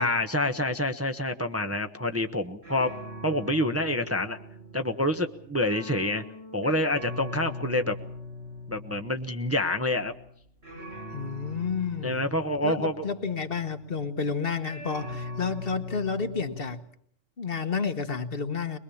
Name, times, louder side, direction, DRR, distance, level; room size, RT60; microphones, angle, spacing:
voice 1, 0.0-2.9 3.2-4.4 4.7-6.2 6.5-7.9 8.7-10.1 12.0-13.1, left 1 dB, 15° right, 5 dB, 0.9 m, -27 dB
sound 1, 2.0-2.3 2.6-14.2 14.6-16.7, left 1 dB, 60° right, 8.0 m, -42 dB
voice 2, 11.1-12.3 12.6-16.8 17.4-18.8, left 5 dB, 50° left, 9 dB, 1.3 m, -30 dB
22.0 x 22.0 x 7.1 m, 0.63 s
omnidirectional pair, 1.3 m